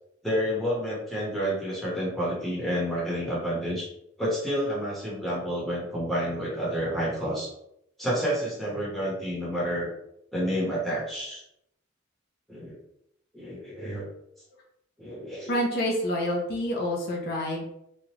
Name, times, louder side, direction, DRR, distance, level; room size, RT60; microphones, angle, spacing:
voice 1, 0.2-3.9 4.2-7.5 8.0-9.9 10.3-11.4 12.5-12.8 13.3-14.1 15.0-15.6, equal, ahead, -7 dB, 1.0 m, -29 dB
voice 2, 15.5-17.6, equal, 50° left, -2 dB, 0.6 m, -27 dB
3.1 x 2.4 x 2.9 m, 0.78 s
head